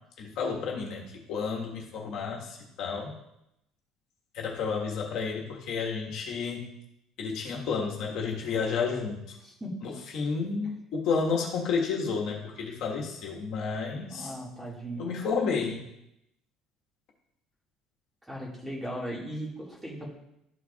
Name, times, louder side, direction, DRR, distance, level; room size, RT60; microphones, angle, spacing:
voice 1, 0.2-3.2 4.3-6.6 7.2-9.4 9.8-14.3 15.0-15.8, left 5 dB, 60° left, -1 dB, 1.4 m, -31 dB
voice 2, 9.4-9.9 14.1-15.1 18.3-20.1, equal, 5° right, -4 dB, 1.8 m, -37 dB
12.5 x 4.6 x 2.4 m, 0.82 s
cardioid pair, 150°, 0 cm